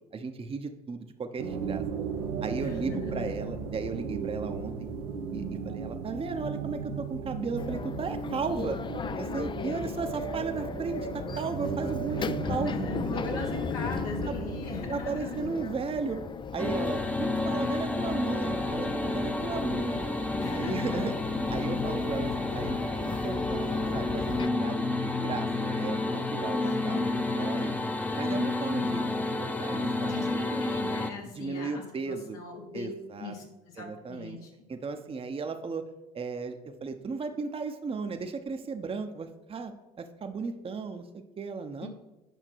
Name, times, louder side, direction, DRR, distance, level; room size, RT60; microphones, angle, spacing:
voice 1, 0.1-1.8 2.4-4.9 5.3-8.8 9.1-12.9 13.3-13.4 14.3-14.4 14.9-16.2 16.5-20.1 20.5-21.1 21.5-27.8 28.2-30.4 31.3-32.4 32.7-33.3 33.8-34.4 34.7-35.9 36.1-39.7 40.0-41.9, right 4 dB, 30° right, 6 dB, 0.8 m, -35 dB
sound 1, 1.4-17.8, right 6 dB, 85° right, 0.7 m, -36 dB
voice 2, 2.6-3.5 12.2-15.5 20.4-21.1 26.8-27.2 30.0-32.9 33.2-34.5 41.8-41.9, left 3 dB, 80° left, 1 dB, 1.6 m, -40 dB
sound 2, 7.6-24.5, left 6 dB, 25° left, 0.4 m, -37 dB
sound 3, 16.6-31.1, left 2 dB, 5° left, 0.7 m, -30 dB
8.1 x 5.8 x 4.5 m, 1.0 s
hypercardioid pair, 60°, 19 cm